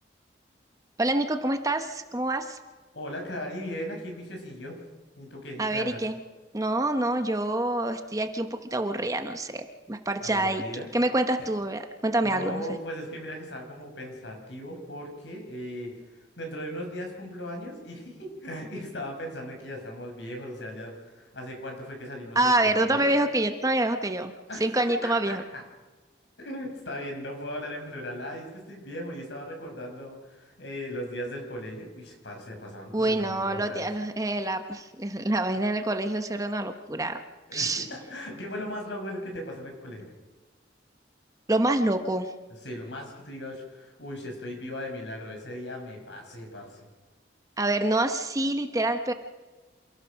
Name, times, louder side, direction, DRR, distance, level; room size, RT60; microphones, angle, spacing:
voice 1, 1.0-2.6 5.6-6.2 6.5-10.6 10.9-12.6 22.3-24.3 24.6-25.4 32.9-37.2 37.5-37.9 41.5-42.3 47.6-49.1, right 1 dB, 20° right, 7 dB, 1.0 m, -26 dB
voice 2, 2.9-4.8 5.2-6.1 10.2-10.9 12.2-15.9 16.4-23.1 24.5-24.7 25.0-25.6 26.4-33.8 37.5-40.1 42.6-46.8, equal, 70° left, 2 dB, 5.7 m, -38 dB
27.5 x 15.5 x 6.4 m, 1.3 s
head